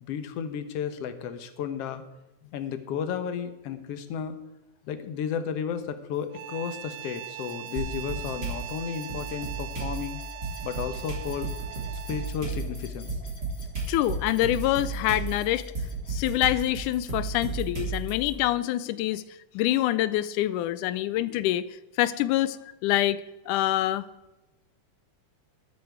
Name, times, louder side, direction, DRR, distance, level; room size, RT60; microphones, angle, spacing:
voice 1, 0.0-2.0 2.5-4.4 4.9-10.2 10.6-11.5 12.1-13.1 22.6-22.7, left 8 dB, 65° left, 10 dB, 1.7 m, -33 dB
sound 1, 6.1-17.2, left 3 dB, 45° left, 2.6 m, -52 dB
sound 2, 6.3-12.5, right 14 dB, 80° right, 1.6 m, -41 dB
sound 3, 7.8-8.6 9.1-18.3, right 4 dB, 30° right, 3.5 m, -33 dB
voice 2, 13.9-15.6 16.1-19.2 19.5-21.7 22.0-22.6 22.8-23.2 23.5-24.0, left 14 dB, 80° left, 16 dB, 2.0 m, -25 dB
13.0 x 12.0 x 4.7 m, 1.0 s
omnidirectional pair, 3.6 m